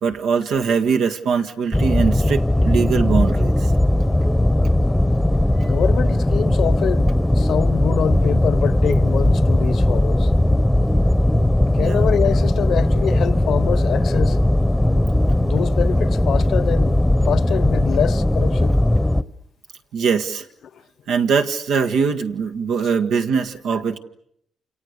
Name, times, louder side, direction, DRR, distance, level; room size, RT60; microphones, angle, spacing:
voice 1, 0.0-3.7 5.6-5.7 11.8-12.0 19.9-20.5 21.1-24.0, right 6 dB, 80° right, 1.8 m, -22 dB
sound 1, 1.7-19.2, left 1 dB, 5° left, 1.0 m, -18 dB
voice 2, 5.6-7.1 7.3-10.3 11.7-14.4 15.4-17.0 17.3-18.8, left 8 dB, 65° left, 1.1 m, -25 dB
29.0 x 28.0 x 6.7 m
cardioid pair, 90°, 0 cm